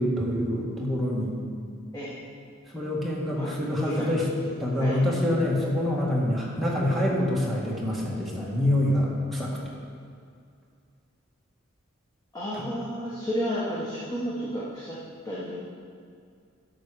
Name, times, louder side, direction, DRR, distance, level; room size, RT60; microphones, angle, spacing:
voice 1, 0.0-1.3 2.7-4.2 4.6-9.7, left 1 dB, ahead, -5 dB, 1.7 m, -26 dB
voice 2, 3.8-5.0 12.3-15.0 15.2-15.6, equal, 20° left, -7 dB, 1.4 m, -32 dB
11.5 x 6.8 x 5.0 m, 2.3 s
head